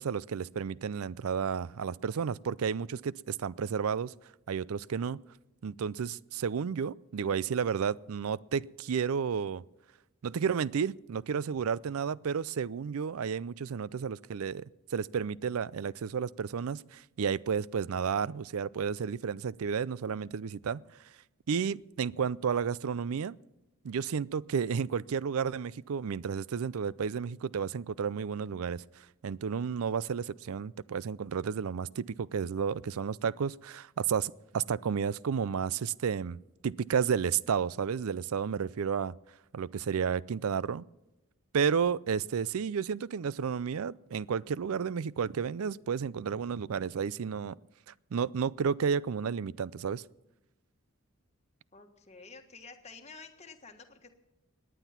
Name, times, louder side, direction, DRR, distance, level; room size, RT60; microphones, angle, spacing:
voice 1, 0.0-4.1 4.5-5.2 5.6-9.6 10.2-14.6 14.9-20.8 21.5-23.3 23.8-28.8 29.2-36.4 36.6-39.1 39.5-40.8 41.5-47.5 48.1-50.0, right 6 dB, 80° right, 21 dB, 0.4 m, -32 dB
voice 2, 51.7-54.1, left 4 dB, 30° left, 4 dB, 1.5 m, -50 dB
18.5 x 10.0 x 5.8 m, 0.97 s
head